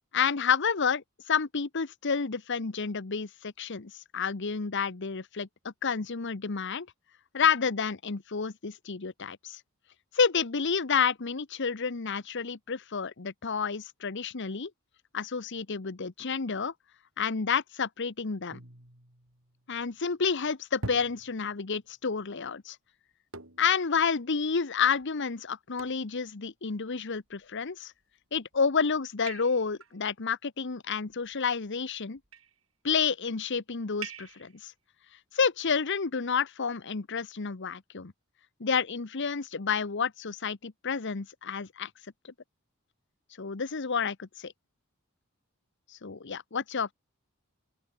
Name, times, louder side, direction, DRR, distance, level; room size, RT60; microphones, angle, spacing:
voice 1, 0.1-6.9 7.3-9.6 10.1-14.7 15.1-16.7 17.2-18.6 19.7-22.8 23.6-27.9 28.3-32.2 32.8-34.7 35.3-38.1 38.6-41.9 43.4-44.5 46.0-46.9, left 6 dB, 60° left, 1.0 m, -30 dB
sound 1, 18.5-19.9 20.8-21.8 23.3-23.9 24.4-24.5 25.0-25.1 25.8-26.2 27.3-27.7 28.4-28.7 29.3-30.0 31.1-31.7 32.2-32.6 34.0-34.6, right 3 dB, 75° right, 5.4 m, -45 dB
open air
head